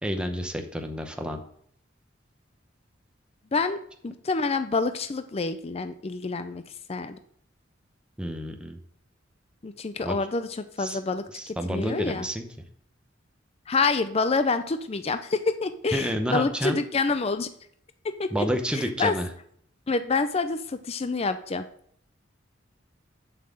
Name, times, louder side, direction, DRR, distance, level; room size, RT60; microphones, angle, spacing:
voice 1, 0.0-1.4 8.2-8.8 10.0-10.2 10.8-11.0 11.3-12.5 15.9-16.8 18.3-19.3, equal, 5° right, 4 dB, 0.9 m, -29 dB
voice 2, 4.0-6.6 6.9-7.2 9.6-12.3 13.7-17.5 18.2-18.5 18.7-19.2 19.9-21.7, left 4 dB, 30° left, 10 dB, 0.5 m, -27 dB
7.5 x 5.8 x 7.5 m, 0.66 s
head